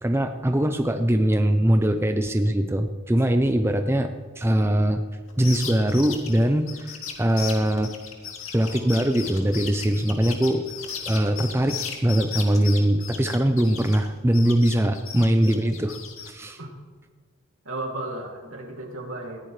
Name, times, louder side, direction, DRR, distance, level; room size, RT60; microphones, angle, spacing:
voice 1, 0.0-5.0 5.4-7.9 8.5-10.6 11.1-16.0 16.3-16.6, right 1 dB, 10° right, 7 dB, 0.6 m, -22 dB
sound 1, 5.3-14.1 14.3-16.3, left 7 dB, 80° left, 2.4 m, -36 dB
voice 2, 17.6-19.5, right 2 dB, 75° right, 0 dB, 2.8 m, -34 dB
20.0 x 15.5 x 3.3 m, 1.5 s
head